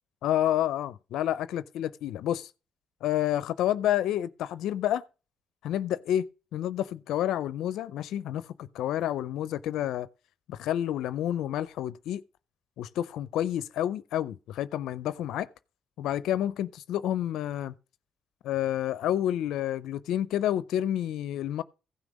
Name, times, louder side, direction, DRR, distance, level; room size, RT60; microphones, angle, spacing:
voice 1, 0.2-2.5 3.0-5.0 5.6-10.1 10.5-12.2 12.8-15.5 16.0-17.7 18.4-21.6, left 11 dB, 75° left, 0.5 m, -29 dB
15.5 x 6.0 x 5.2 m
hypercardioid pair, 50°, 0 cm